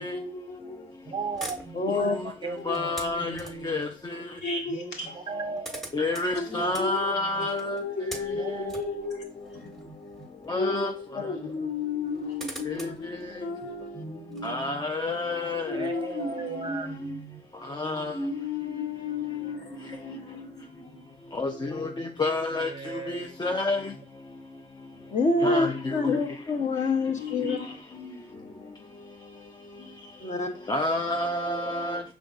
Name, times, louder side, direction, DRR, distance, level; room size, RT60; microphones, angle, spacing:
voice 1, 0.0-0.9 2.6-2.9 4.4-5.1 6.3-9.3 10.5-14.7 15.7-17.2 18.1-21.1 27.2-28.9 29.8-30.1, left 3 dB, 60° left, 1.5 m, -34 dB
voice 2, 1.0-3.8 4.6-5.8 6.4-6.7 7.0-7.5 8.3-8.8 11.2-11.7 12.8-13.0 13.6-14.9 15.7-17.4 22.5-23.4 23.8-24.0 25.0-25.1, right 4 dB, 25° right, 0.7 m, -38 dB
sound 1, 1.3-3.8 4.9-5.0 5.2-10.7 11.0-11.1 11.9-14.5, right 1 dB, ahead, 1.1 m, -44 dB
voice 3, 1.7-2.2 11.1-11.2 25.1-27.6 30.2-30.5, left 3 dB, 40° left, 0.8 m, -26 dB
voice 4, 2.7-3.3 3.6-3.9 5.9-7.8 10.5-10.9 14.4-15.6 17.8-18.1 21.4-21.5 21.8-21.9 22.2-22.7 23.4-23.8 25.4-25.7 30.7-32.0, left 2 dB, 20° left, 0.4 m, -28 dB
5.1 x 3.5 x 2.4 m
cardioid pair, 90°, 20 cm